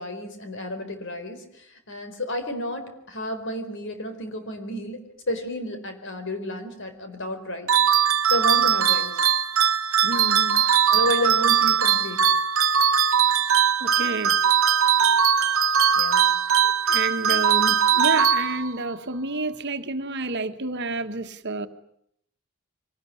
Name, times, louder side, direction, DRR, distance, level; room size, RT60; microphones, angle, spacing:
voice 1, 0.0-7.8 8.3-9.2 10.9-12.2 16.0-16.3, left 1 dB, 60° left, 7 dB, 4.5 m, -31 dB
sound 1, 7.7-18.9, right 7 dB, 70° right, 1.1 m, -20 dB
voice 2, 10.0-10.7 13.8-14.4 16.6-21.7, right 3 dB, 50° right, 8 dB, 1.5 m, -30 dB
25.0 x 19.0 x 9.8 m, 0.70 s
head